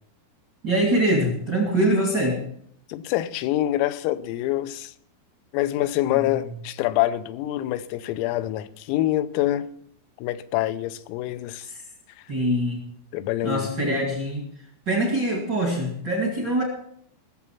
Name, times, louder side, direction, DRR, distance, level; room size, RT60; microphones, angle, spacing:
voice 1, 0.6-2.4 6.1-6.5 11.7-11.8 12.3-12.8 13.4-14.4 14.8-16.6, right 1 dB, 55° right, 1.2 m, -24 dB
voice 2, 2.9-4.9 5.5-9.7 10.2-11.7 13.1-14.0, left 14 dB, 85° left, 3.4 m, -26 dB
19.0 x 7.3 x 5.8 m
omnidirectional pair, 6.0 m